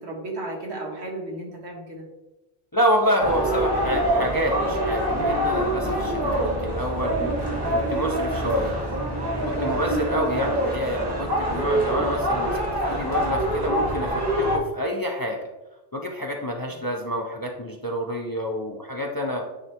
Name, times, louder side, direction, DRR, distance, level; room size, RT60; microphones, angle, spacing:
voice 1, 0.0-2.0 6.2-6.5, right 2 dB, 80° right, -1 dB, 1.7 m, -34 dB
voice 2, 2.7-7.2 7.7-8.8 9.4-15.4 15.9-19.4, equal, 25° left, 1 dB, 0.5 m, -28 dB
sound 1, 3.2-14.6, right 1 dB, 20° right, 1.1 m, -25 dB
9.6 x 3.3 x 2.9 m, 1.1 s
omnidirectional pair, 1.1 m